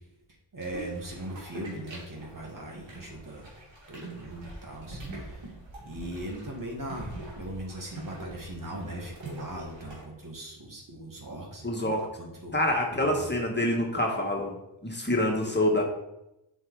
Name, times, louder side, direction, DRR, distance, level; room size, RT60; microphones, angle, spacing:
voice 1, 0.5-3.5 3.9-5.5 5.8-12.6 12.9-13.2, right 1 dB, 45° right, 0 dB, 2.0 m, -39 dB
sound 1, 0.6-10.0, right 2 dB, 85° right, 2.9 m, -44 dB
voice 2, 11.6-12.1 12.5-14.5 14.8-15.8, left 1 dB, 25° left, 0 dB, 1.6 m, -26 dB
7.4 x 4.9 x 4.8 m, 0.89 s
cardioid pair, 60°, 44 cm